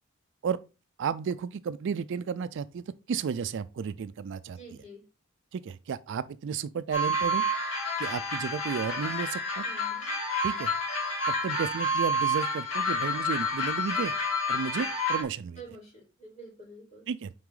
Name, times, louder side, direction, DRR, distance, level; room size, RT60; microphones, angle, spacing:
voice 1, 1.0-4.6 5.5-7.4 8.0-9.7 10.4-10.7 11.4-14.1 14.5-15.6 17.1-17.3, right 6 dB, 60° right, 0.4 m, -33 dB
voice 2, 4.5-5.0 9.6-10.1 15.6-17.1, right 2 dB, 35° left, 4.1 m, -48 dB
sound 1, 6.9-15.2, left 1 dB, 80° left, 2.3 m, -29 dB
6.0 x 4.8 x 3.8 m
head